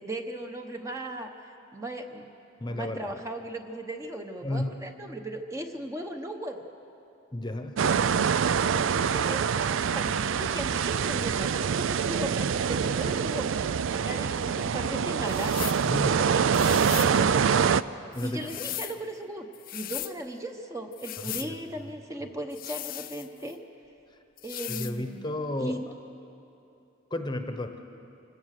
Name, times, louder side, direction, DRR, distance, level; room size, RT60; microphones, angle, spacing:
voice 1, 0.0-1.3 1.7-2.3 2.7-6.6 8.7-17.3 18.2-23.6 24.4-25.3 25.6-25.8, right 1 dB, 15° right, 4 dB, 0.9 m, -37 dB
voice 2, 2.6-3.1 4.4-4.8 7.3-7.8 15.8-16.1 18.1-18.6 21.2-21.9 24.7-25.8 27.1-27.8, left 1 dB, 20° left, 6 dB, 1.0 m, -33 dB
sound 1, 7.8-17.8, right 6 dB, 70° right, 0.4 m, -25 dB
sound 2, 15.3-15.8 16.5-17.2 18.1-19.0 19.5-20.1 20.9-21.5 22.5-23.5 24.4-25.0, left 14 dB, 45° left, 0.5 m, -37 dB
25.5 x 16.5 x 6.6 m, 2.8 s
head